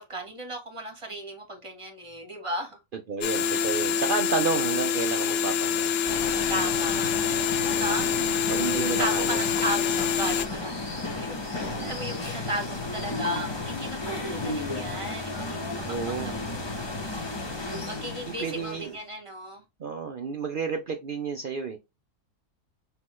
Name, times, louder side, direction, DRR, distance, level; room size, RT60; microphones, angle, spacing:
voice 1, 0.0-2.8 6.5-16.7 17.8-19.6, right 1 dB, 25° right, 1.1 m, -35 dB
voice 2, 2.9-5.9 7.7-8.0 8.5-9.4 11.5-12.0 15.9-16.4 18.3-19.0 19.8-21.8, right 5 dB, 70° right, 0.5 m, -31 dB
sound 1, 3.2-10.5, left 7 dB, 65° left, 0.6 m, -26 dB
sound 2, 6.1-19.0, left 2 dB, 25° left, 0.6 m, -33 dB
5.7 x 3.0 x 3.0 m
omnidirectional pair, 1.6 m